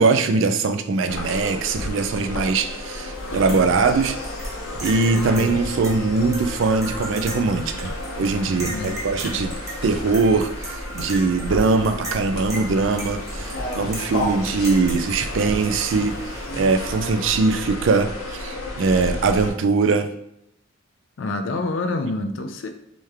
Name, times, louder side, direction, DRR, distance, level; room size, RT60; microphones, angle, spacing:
voice 1, 0.0-4.2 4.8-9.5 9.8-20.1, right 4 dB, 65° right, 0.3 m, -21 dB
sound 1, 1.1-19.5, left 1 dB, 80° left, 0.9 m, -32 dB
sound 2, 3.1-17.1, right 1 dB, 15° right, 0.7 m, -37 dB
voice 2, 3.5-3.8 8.6-9.0 21.2-22.7, left 2 dB, 60° left, 0.4 m, -27 dB
3.3 x 3.1 x 3.4 m
head